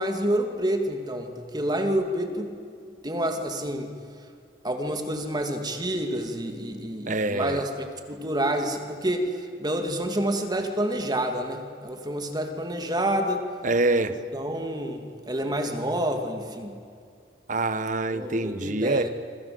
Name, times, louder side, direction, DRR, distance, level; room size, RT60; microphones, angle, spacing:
voice 1, 0.0-2.6 3.0-3.9 4.6-13.4 14.0-16.8 18.1-19.1, right 1 dB, 25° right, 5 dB, 2.6 m, -28 dB
voice 2, 7.1-7.6 13.6-14.2 17.5-19.1, right 2 dB, 45° right, 11 dB, 1.4 m, -25 dB
27.5 x 25.5 x 7.9 m, 2.3 s
head